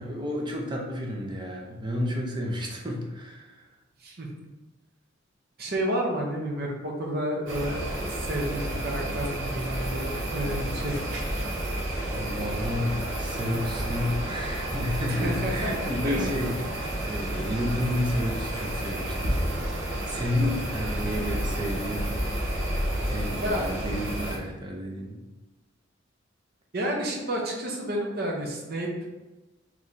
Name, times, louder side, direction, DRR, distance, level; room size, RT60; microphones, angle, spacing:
voice 1, 0.0-3.6 12.0-19.4 19.8-22.3 23.1-25.2, left 1 dB, 25° right, 0 dB, 0.7 m, -31 dB
voice 2, 5.6-11.0 15.1-16.4 17.4-17.5 23.4-23.7 24.4-24.5 26.7-29.1, right 1 dB, 55° right, -1 dB, 0.9 m, -31 dB
sound 1, 7.5-24.4, right 1 dB, 75° right, 1.1 m, -31 dB
3.4 x 3.1 x 4.0 m, 1.1 s
head